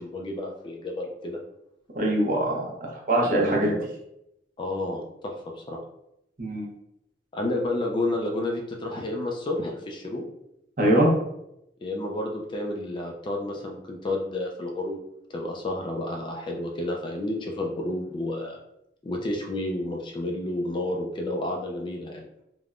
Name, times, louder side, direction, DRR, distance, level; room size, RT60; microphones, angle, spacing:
voice 1, 0.0-1.4 3.2-3.9 4.6-5.8 7.3-10.3 11.8-15.0 15.3-18.6 19.0-22.3, left 1 dB, 25° left, 1 dB, 0.3 m, -31 dB
voice 2, 1.9-3.7 6.4-6.7 10.8-11.1, right 1 dB, 50° right, -2 dB, 0.8 m, -23 dB
3.3 x 2.1 x 2.5 m, 0.81 s
head